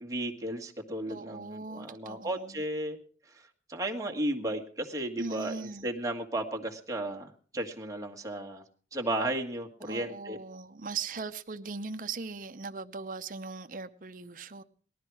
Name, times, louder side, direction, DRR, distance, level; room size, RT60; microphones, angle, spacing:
voice 1, 0.0-3.0 3.3-8.6 8.9-10.4, right 1 dB, 20° right, 1.8 m, -34 dB
voice 2, 1.1-2.6 5.2-5.9 9.8-14.6, right 4 dB, 45° right, 0.7 m, -39 dB
19.5 x 13.0 x 4.8 m
head